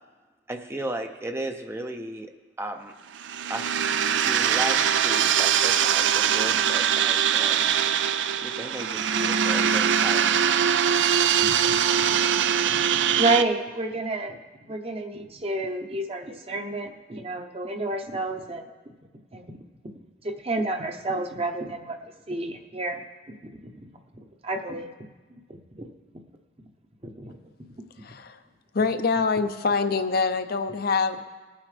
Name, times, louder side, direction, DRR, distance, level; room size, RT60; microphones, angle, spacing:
voice 1, 0.5-2.3 2.6-2.9 3.5-3.9 4.2-7.6 8.4-10.4, right 1 dB, 15° right, 5 dB, 0.5 m, -35 dB
sound 1, 3.2-13.4, right 8 dB, 75° right, 0.4 m, -22 dB
voice 2, 11.4-12.2 12.7-12.8 13.1-14.4 14.7-18.6 19.3-19.5 20.2-22.0 22.3-23.0 23.4-23.9 24.4-24.9 25.7-25.9 27.0-27.4, right 2 dB, 35° right, 5 dB, 0.9 m, -30 dB
voice 3, 28.0-28.4 28.7-31.2, left 4 dB, 55° left, 9 dB, 0.6 m, -25 dB
19.5 x 9.2 x 3.3 m, 1.3 s
head